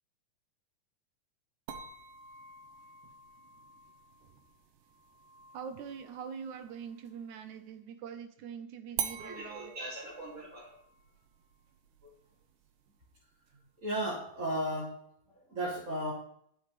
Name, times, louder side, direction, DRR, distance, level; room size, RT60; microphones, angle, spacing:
sound 1, 1.7-7.3 9.0-14.0, right 8 dB, 85° right, 2.7 m, -46 dB
voice 1, 5.5-9.7, right 7 dB, 70° right, 9 dB, 2.3 m, -43 dB
voice 2, 9.2-10.8 13.8-15.0 15.3-16.1, right 1 dB, 25° right, -6 dB, 2.7 m, -36 dB
21.0 x 8.0 x 3.4 m, 0.70 s
omnidirectional pair, 3.7 m